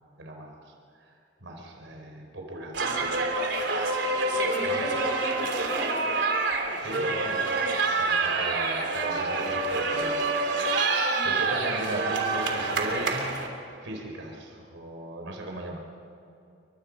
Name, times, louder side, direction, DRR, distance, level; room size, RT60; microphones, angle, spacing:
voice 1, 0.2-0.6 1.0-1.1 1.4-3.4 4.6-4.9 6.7-7.5 8.0-10.9 11.2-13.3 13.7-15.8, right 1 dB, 90° right, 1 dB, 4.6 m, -37 dB
sound 1, 2.7-13.5, right 3 dB, 70° right, 3.1 m, -27 dB
voice 2, 4.3-6.1 11.1-11.3, left 1 dB, 40° left, -4 dB, 4.9 m, -36 dB
29.0 x 24.0 x 5.5 m, 2.6 s
head